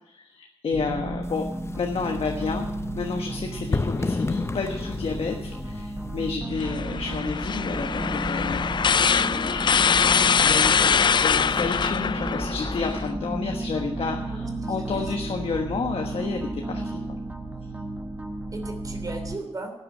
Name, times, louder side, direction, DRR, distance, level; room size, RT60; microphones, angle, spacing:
voice 1, 0.1-1.4 1.8-2.7 2.9-8.6 9.1-9.9 10.4-17.2, left 4 dB, 65° left, 3 dB, 1.3 m, -31 dB
sound 1, 0.7-19.4, right 1 dB, 15° right, 1.1 m, -33 dB
sound 2, 1.2-6.4, left 3 dB, 25° left, 0.7 m, -32 dB
sound 3, 6.6-13.1, left 7 dB, 50° left, 0.4 m, -23 dB
voice 2, 14.3-15.1 16.1-16.4 18.5-19.7, right 2 dB, 35° right, 5 dB, 3.1 m, -37 dB
12.0 x 9.3 x 7.3 m, 0.97 s
cardioid pair, 75°, 10 cm